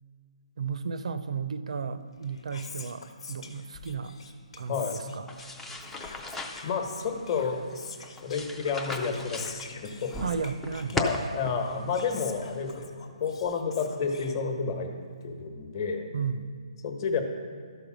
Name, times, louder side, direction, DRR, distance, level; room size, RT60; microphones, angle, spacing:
voice 1, 0.6-3.0 3.3-4.2 4.6-5.3 10.2-11.0 16.1-16.5, right 5 dB, 65° right, 12 dB, 0.5 m, -33 dB
Whispering, 2.0-14.9, left 4 dB, 55° left, 1.1 m, -46 dB
sound 1, 5.3-12.7, left 1 dB, 5° left, 0.4 m, -38 dB
voice 2, 6.6-7.6 8.2-10.1 10.9-12.9 13.2-14.9 15.2-16.1 16.8-17.2, left 5 dB, 35° left, 4 dB, 1.1 m, -30 dB
12.5 x 5.2 x 6.1 m, 2.2 s
hypercardioid pair, 165°, 4 cm